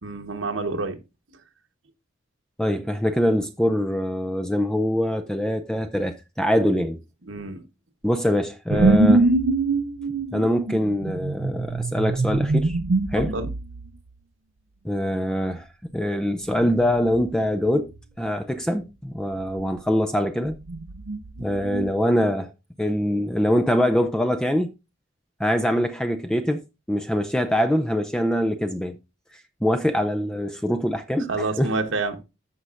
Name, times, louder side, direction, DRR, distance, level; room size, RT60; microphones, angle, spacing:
voice 1, 0.0-1.0 7.3-7.6 13.2-13.5 31.3-32.2, right 3 dB, 85° right, 1.2 m, -28 dB
voice 2, 2.6-7.0 8.0-9.3 10.3-12.8 13.1-13.3 14.8-17.9 18.2-20.6 21.4-22.5 22.8-24.7 25.4-26.6 26.9-29.0 29.6-31.8, equal, 5° left, 0.4 m, -24 dB
sound 1, 8.7-13.9 16.6-17.3 17.6-18.0 20.5-21.9, right 2 dB, 65° right, 0.6 m, -23 dB
14.0 x 5.5 x 2.5 m
head